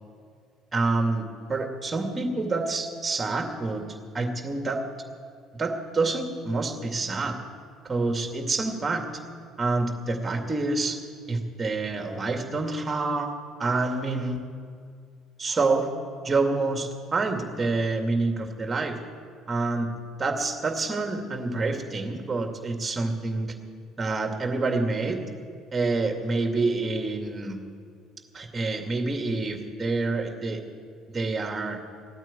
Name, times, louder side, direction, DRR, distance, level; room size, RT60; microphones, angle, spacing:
voice 1, 0.7-3.8 4.1-4.8 5.5-7.4 7.8-9.1 9.6-11.0 11.3-13.3 13.6-14.4 15.4-15.9 16.2-19.0 19.5-19.9 20.2-23.5 24.0-25.2 25.7-27.6 28.3-30.6 31.1-31.8, right 3 dB, 25° right, 4 dB, 2.4 m, -27 dB
15.5 x 9.1 x 9.1 m, 2.2 s
hypercardioid pair, 60°, 0 cm